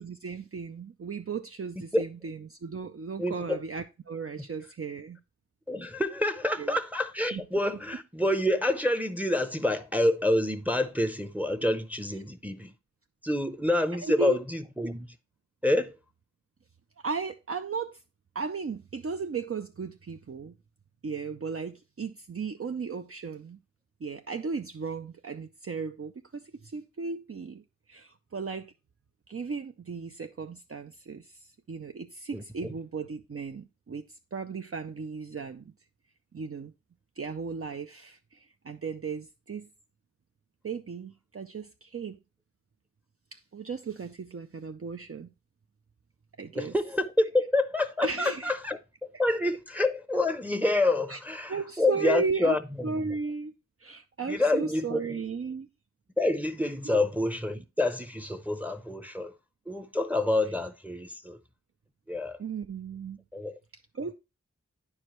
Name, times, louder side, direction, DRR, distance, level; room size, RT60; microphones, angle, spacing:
voice 1, 0.0-5.2 6.6-6.8 7.3-7.4 14.0-14.4 17.0-18.0 18.3-20.5 21.0-23.6 24.0-28.7 29.3-35.7 36.3-36.7 37.2-39.7 40.6-42.2 43.3-45.3 46.4-46.7 48.0-48.6 51.1-51.2 51.5-52.6 52.8-53.5 53.8-55.7 56.8-57.1 62.4-63.2 63.9-64.1, right 5 dB, 50° right, 0.5 m, -36 dB
voice 2, 3.2-3.6 5.7-12.7 13.2-15.1 15.6-16.0 32.3-32.7 46.5-48.8 49.2-52.6 52.9-53.0 54.3-55.2 56.2-59.3 59.7-61.4 62.1-62.4 63.3-63.5, left 1 dB, 5° right, 0.7 m, -27 dB
9.6 x 4.9 x 3.0 m
wide cardioid pair, 45°, 29 cm